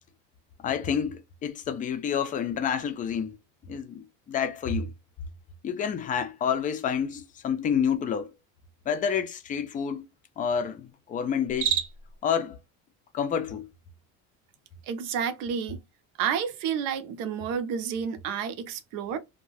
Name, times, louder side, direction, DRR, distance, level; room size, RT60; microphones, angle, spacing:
voice 1, 0.6-3.4 3.7-4.9 5.6-8.3 8.9-10.1 10.4-11.8 12.2-12.6 13.1-13.7, left 7 dB, 25° left, 0.4 m, -29 dB
Cricket, 11.4-12.2, right 9 dB, 40° right, 0.4 m, -29 dB
voice 2, 14.8-15.8 16.2-19.2, right 7 dB, 85° right, 0.7 m, -30 dB
2.6 x 2.1 x 3.1 m
cardioid pair, 160°, 32 cm